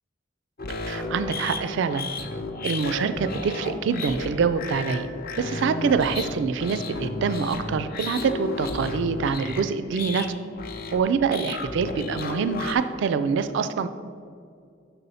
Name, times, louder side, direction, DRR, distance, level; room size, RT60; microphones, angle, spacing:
sound 1, 0.6-12.7, left 3 dB, 50° left, 0.6 m, -33 dB
voice 1, 0.9-2.1 2.6-5.1 5.4-10.3 10.9-13.9, right 5 dB, 65° right, 12 dB, 0.3 m, -25 dB
5.9 x 4.1 x 5.5 m, 2.3 s
head